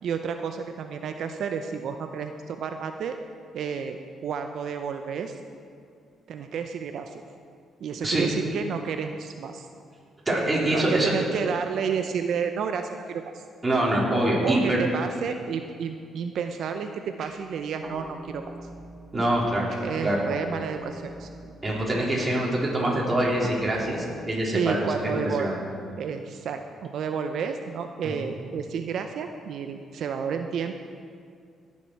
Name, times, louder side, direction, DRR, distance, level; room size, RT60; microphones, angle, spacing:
voice 1, 0.0-3.2 3.5-5.4 6.3-7.2 7.8-9.7 10.7-13.4 14.4-18.5 19.8-21.3 24.5-25.5 26.0-30.7, right 6 dB, 70° right, 6 dB, 0.5 m, -31 dB
voice 2, 10.3-11.1 13.6-14.8 19.1-19.7 20.0-20.2 21.6-25.5, right 1 dB, 25° right, -4 dB, 3.5 m, -24 dB
sound 1, 17.2-23.9, right 2 dB, 50° right, 2.0 m, -42 dB
18.5 x 7.2 x 4.6 m, 2.3 s
cardioid pair, 90°, 0 cm